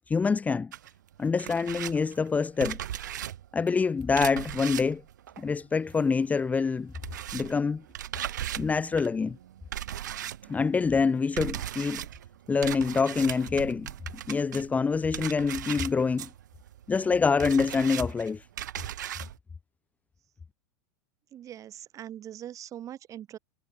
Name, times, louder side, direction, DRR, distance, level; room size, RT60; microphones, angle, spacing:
voice 1, 0.1-0.7 1.2-2.8 3.5-5.0 5.4-6.9 7.3-7.8 8.6-9.4 10.5-12.0 12.5-13.9 14.3-16.3 16.9-18.4, left 5 dB, 15° left, 0.8 m, -26 dB
sound 1, 0.7-6.2 6.5-19.4, right 11 dB, 65° right, 1.5 m, -38 dB
voice 2, 21.3-23.4, right 11 dB, 30° right, 3.8 m, -42 dB
figure-of-eight pair, 90°, 10 cm